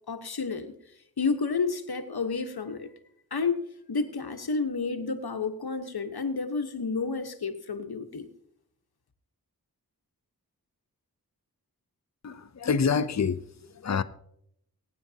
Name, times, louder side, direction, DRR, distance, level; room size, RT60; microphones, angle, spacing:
voice 1, 0.1-0.7 1.2-2.9 3.3-3.6 3.9-8.3, left 4 dB, 85° left, 1.2 m, -30 dB
voice 2, 12.2-14.0, left 6 dB, 45° left, 0.6 m, -27 dB
23.0 x 9.4 x 2.8 m
wide cardioid pair, 55°, 37 cm